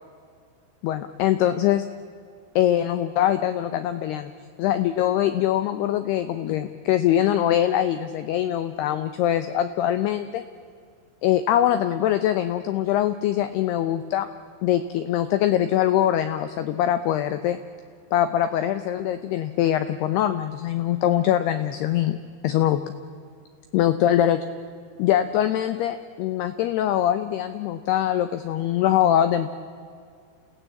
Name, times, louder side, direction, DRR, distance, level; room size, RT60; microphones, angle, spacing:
voice 1, 0.8-1.9 2.6-4.3 4.6-10.4 11.2-14.3 14.6-17.6 18.1-22.2 22.4-22.8 23.7-24.4 25.0-29.5, left 11 dB, 85° left, 11 dB, 2.3 m, -23 dB
28.5 x 17.0 x 8.4 m, 2.2 s
omnidirectional pair, 5.7 m